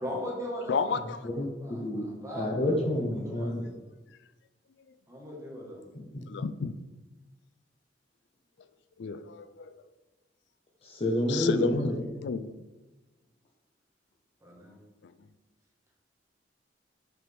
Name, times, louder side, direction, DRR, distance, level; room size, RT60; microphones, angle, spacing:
voice 1, 0.0-0.8 1.6-3.7 5.1-5.8 14.4-14.7, equal, 15° right, -3 dB, 1.6 m, -39 dB
voice 2, 0.7-1.5 1.8-1.9 3.0-3.1 6.3-6.7 9.0-9.8 11.3-12.5 15.0-15.1, left 5 dB, 70° left, 12 dB, 0.4 m, -32 dB
voice 3, 1.4-2.1 2.3-3.6 6.0-6.2 10.8-12.0, left 1 dB, 35° left, 0 dB, 0.7 m, -29 dB
6.1 x 4.6 x 3.5 m, 1.2 s
head